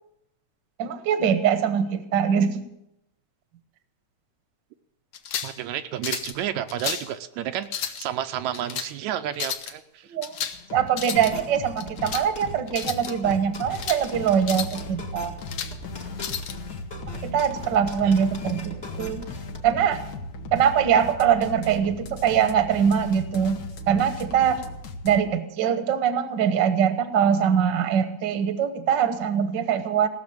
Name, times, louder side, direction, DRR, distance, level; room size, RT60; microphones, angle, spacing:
voice 1, 0.8-2.6 10.1-10.3 10.7-15.3 17.2-19.2 19.6-20.0 20.5-23.6 23.9-24.6 25.0-30.1, right 8 dB, 55° right, 9 dB, 1.4 m, -23 dB
sound 1, 5.1-5.6 6.0-6.4 6.7-7.1 7.6-8.1 8.5-8.9 9.3-9.7 10.2-10.6 10.9-11.3 11.8-12.3 12.7-13.1 13.5-14.0 14.4-14.8 15.2-15.7 16.2-16.5, left 8 dB, 85° left, 1.0 m, -32 dB
voice 2, 5.4-10.1 18.0-18.1, right 11 dB, 80° right, 9 dB, 2.0 m, -31 dB
sound 2, 10.5-25.2, left 2 dB, 55° left, 1.2 m, -38 dB
sound 3, 11.1-19.7, left 1 dB, 20° left, 1.2 m, -40 dB
17.5 x 6.9 x 8.6 m, 0.83 s
omnidirectional pair, 3.3 m